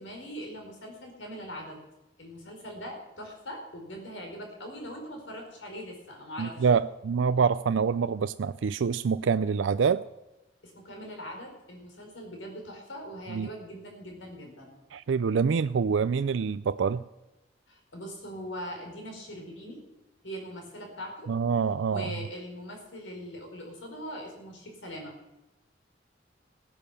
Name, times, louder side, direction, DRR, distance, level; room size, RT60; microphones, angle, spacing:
voice 1, 0.0-1.8 2.2-6.7 10.6-14.7 17.7-19.8 20.2-21.3 21.9-25.1, equal, 80° left, 2 dB, 4.9 m, -41 dB
voice 2, 6.4-10.0 13.3-13.5 14.9-17.0 21.3-22.1, right 6 dB, 75° right, 12 dB, 0.4 m, -26 dB
16.5 x 10.0 x 6.9 m, 0.99 s
head